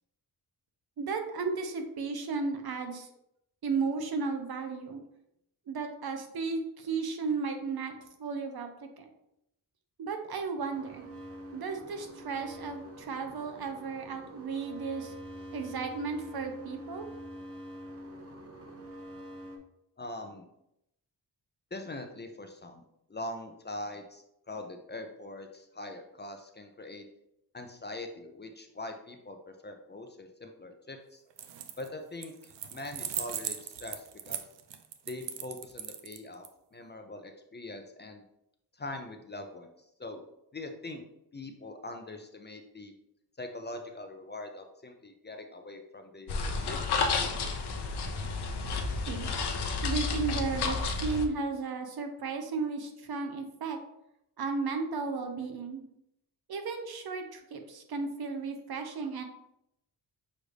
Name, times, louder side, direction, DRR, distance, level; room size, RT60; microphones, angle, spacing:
voice 1, 1.0-3.1 3.6-5.0 5.7-9.1 10.0-11.0 11.5-15.1 15.5-17.1 49.1-49.3 49.8-53.8 54.4-55.8 56.5-59.2, right 4 dB, 60° right, 5 dB, 0.8 m, -34 dB
sound 1, 10.7-19.6, equal, 35° right, 0.9 m, -45 dB
voice 2, 20.0-20.5 21.7-22.8 23.1-27.0 27.5-29.4 29.6-31.2 31.8-34.4 35.1-36.4 36.7-38.2 38.8-39.7 40.0-40.2 40.5-41.0 41.3-42.9 43.4-46.9, left 2 dB, 25° left, 5 dB, 0.5 m, -42 dB
sound 2, 31.3-31.9 32.2-36.5, right 10 dB, 85° right, 0.5 m, -38 dB
sound 3, 46.3-51.3, left 4 dB, 70° left, 0.7 m, -31 dB
6.3 x 2.5 x 3.3 m, 0.81 s
cardioid pair, 85°, 42 cm